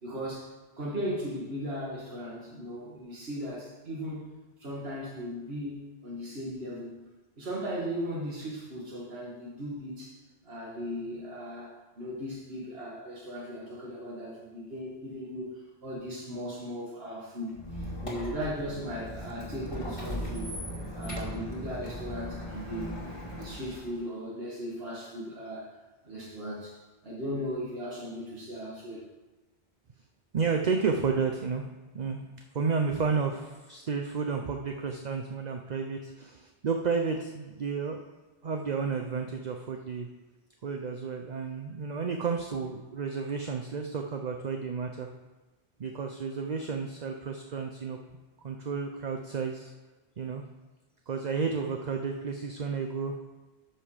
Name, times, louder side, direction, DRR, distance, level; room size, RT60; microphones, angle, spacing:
voice 1, 0.0-0.5 0.8-4.3 4.6-7.0 7.4-10.2 10.4-11.7 12.0-20.6 20.9-23.0 23.3-25.8 26.0-26.8 27.0-29.0, equal, 70° right, -6 dB, 2.1 m, -37 dB
Squeak, 17.5-24.0, equal, 30° left, 2.2 m, -38 dB
voice 2, 30.3-31.7 31.9-32.2 32.5-38.0 38.4-40.1 40.6-45.1 45.8-48.0 48.4-49.7 50.2-50.4 51.1-53.2, right 5 dB, 45° right, 4 dB, 0.7 m, -31 dB
13.0 x 5.6 x 4.9 m, 1.2 s
omnidirectional pair, 1.1 m